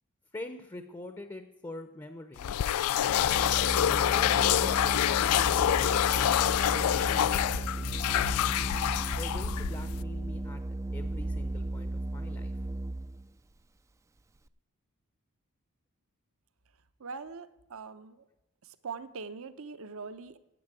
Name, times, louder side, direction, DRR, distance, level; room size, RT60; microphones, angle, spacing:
voice 1, 0.3-2.6 3.2-6.3 6.7-8.5 9.2-10.6 10.9-12.5, left 2 dB, 15° left, 9 dB, 0.7 m, -44 dB
sound 1, 2.4-10.0, left 11 dB, 75° left, 0.3 m, -26 dB
Organ, 3.0-13.3, right 2 dB, 15° right, 0.3 m, -35 dB
voice 2, 17.0-18.3 18.6-20.4, right 4 dB, 65° right, 12 dB, 0.8 m, -42 dB
10.0 x 8.3 x 8.9 m, 0.95 s
head